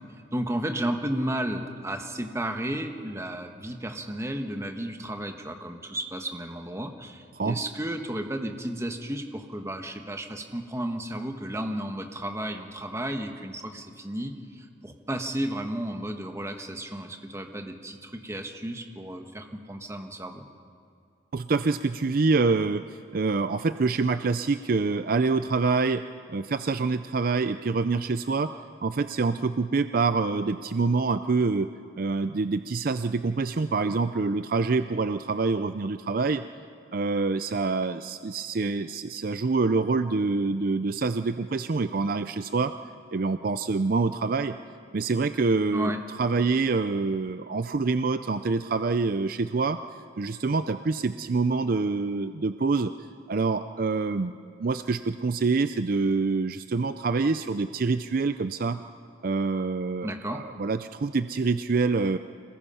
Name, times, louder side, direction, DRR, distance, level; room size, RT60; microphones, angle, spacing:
voice 1, 0.3-20.5 45.7-46.0 60.0-60.4, right 1 dB, 15° right, 4 dB, 1.4 m, -33 dB
voice 2, 21.3-22.8 23.1-26.0 26.3-28.5 28.8-31.7 31.9-36.4 36.9-42.7 43.1-44.5 44.9-45.9 46.2-49.8 50.2-52.9 53.3-54.3 54.6-58.8 59.2-62.2, right 4 dB, 50° right, 10 dB, 0.5 m, -26 dB
26.0 x 20.0 x 5.7 m, 2.5 s
head